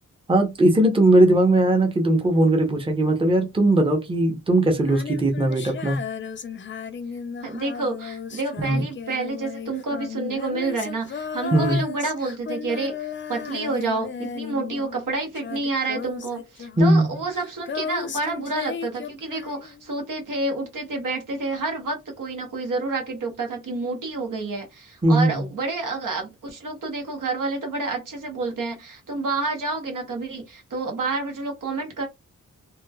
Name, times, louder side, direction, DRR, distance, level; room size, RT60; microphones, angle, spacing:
voice 1, 0.3-6.0 8.6-8.9 11.5-11.8 16.8-17.1 25.0-25.4, right 1 dB, 15° right, 0.7 m, -19 dB
Female singing, 4.7-15.1 15.3-19.8, left 6 dB, 35° left, 0.4 m, -35 dB
voice 2, 7.4-32.0, right 3 dB, 75° right, 0.9 m, -29 dB
3.1 x 2.1 x 2.2 m
wide cardioid pair, 80°, 32 cm